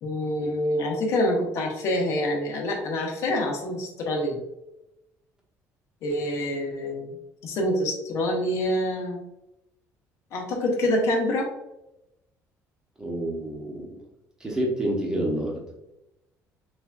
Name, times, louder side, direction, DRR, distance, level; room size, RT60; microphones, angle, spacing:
voice 1, 0.0-4.4 6.0-7.2 7.4-9.2 10.3-11.5, left 1 dB, 55° left, 0 dB, 1.1 m, -26 dB
voice 2, 13.0-14.0 14.4-15.6, right 1 dB, 10° right, -2 dB, 1.0 m, -28 dB
6.2 x 2.7 x 2.3 m, 0.90 s
cardioid pair, 160°, 6 cm